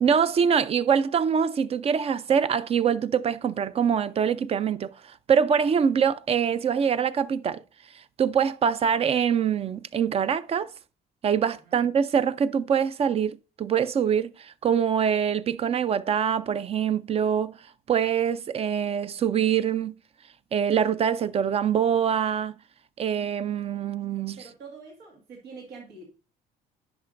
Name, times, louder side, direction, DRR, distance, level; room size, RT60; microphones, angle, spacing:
voice 1, 0.0-7.6 8.2-10.7 11.2-17.5 17.9-19.9 20.5-22.5 23.0-24.5, right 7 dB, 35° right, 0.4 m, -24 dB
voice 2, 24.4-26.0, right 4 dB, 90° right, 1.8 m, -45 dB
10.0 x 5.8 x 2.5 m
cardioid pair, 110°, 17 cm